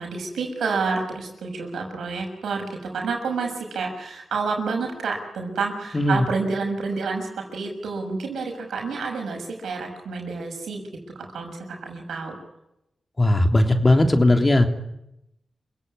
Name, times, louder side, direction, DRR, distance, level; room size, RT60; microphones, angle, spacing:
voice 1, 0.0-10.8 11.1-12.4, right 4 dB, 85° right, 2 dB, 6.5 m, -29 dB
voice 2, 5.9-6.2 13.2-14.7, left 1 dB, 35° left, 5 dB, 3.3 m, -18 dB
28.0 x 17.0 x 9.8 m, 0.87 s
cardioid pair, 45°, 0 cm